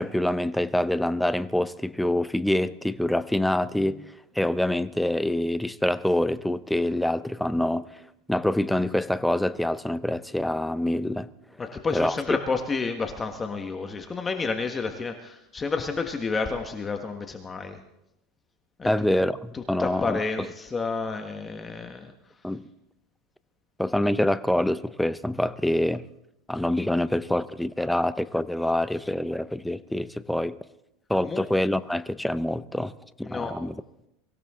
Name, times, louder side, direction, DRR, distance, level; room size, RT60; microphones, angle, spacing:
voice 1, 0.0-7.9 8.3-11.3 11.9-12.2 18.8-20.5 22.4-22.7 23.8-26.0 26.5-30.6 31.1-32.9 33.2-33.7, left 1 dB, 5° left, 0.6 m, -26 dB
voice 2, 11.6-17.8 18.8-19.1 19.5-22.1 31.2-31.4 33.2-33.5, left 4 dB, 20° left, 1.4 m, -30 dB
24.0 x 16.0 x 3.7 m
supercardioid pair, 125°, 0 cm